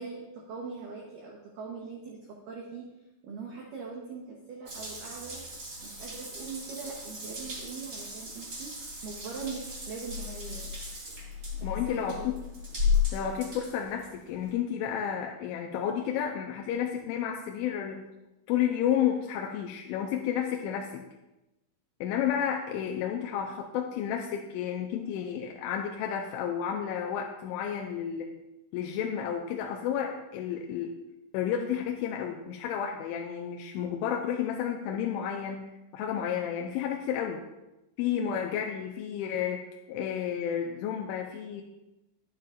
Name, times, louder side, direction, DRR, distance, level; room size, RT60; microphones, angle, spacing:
voice 1, 0.0-2.9 3.2-5.4 5.8-8.7 9.0-10.7 11.5-12.3 38.1-38.3, right 5 dB, 80° right, -2 dB, 1.9 m, -41 dB
Water tap faucet / Bathtub (filling or washing) / Drip, 4.7-14.5, left 5 dB, 25° right, 2.3 m, -35 dB
voice 2, 11.6-12.3 13.1-18.1 18.5-21.0 22.0-28.4 28.7-30.9 31.3-37.5 38.0-41.6, left 9 dB, 90° left, 2 dB, 3.1 m, -31 dB
11.0 x 10.5 x 2.5 m, 0.98 s
omnidirectional pair, 5.4 m